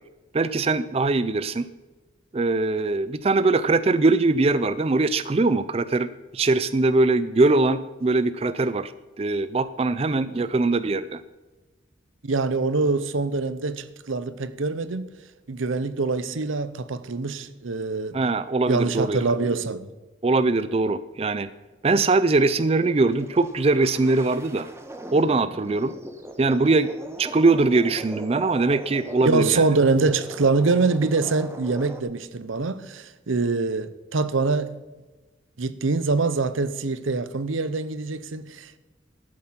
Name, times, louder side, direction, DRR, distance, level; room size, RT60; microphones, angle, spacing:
voice 1, 0.3-1.6 2.3-6.1 6.3-8.9 9.2-11.2 18.1-19.2 20.2-21.5 21.8-24.7 25.1-25.9 26.4-26.9 27.2-29.6, right 3 dB, 30° right, 0.4 m, -21 dB
voice 2, 12.2-15.0 15.5-18.2 18.7-19.9 29.2-34.7 35.6-38.8, right 3 dB, 85° right, 0.8 m, -24 dB
sound 1, 22.4-32.0, right 1 dB, 15° right, 0.9 m, -40 dB
12.5 x 7.5 x 5.8 m
head